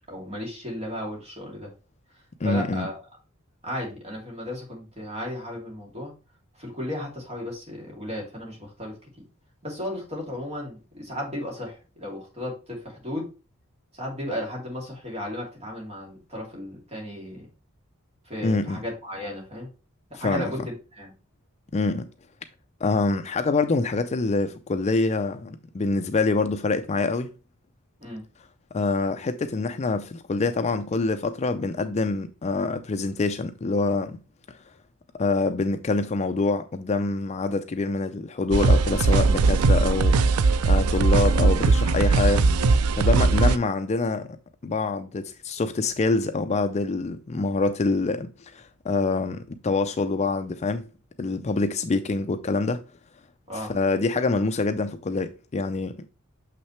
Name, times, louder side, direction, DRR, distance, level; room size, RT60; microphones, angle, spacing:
voice 1, 0.1-1.7 2.4-3.0 3.6-6.1 6.6-9.2 9.6-13.3 13.9-17.5 18.2-19.7 20.1-21.1 28.0-28.2 43.5-43.6 53.5-53.7, left 1 dB, 30° right, 2.7 m, -34 dB
voice 2, 2.4-2.9 18.4-18.8 20.2-20.5 21.7-22.1 22.8-27.3 28.7-34.2 35.1-40.2 40.6-42.4 42.9-44.3 44.6-50.9 51.2-52.8 53.6-56.0, left 3 dB, 30° left, 0.4 m, -25 dB
sound 1, 38.5-43.6, right 3 dB, 85° right, 0.4 m, -19 dB
6.5 x 5.8 x 3.2 m
head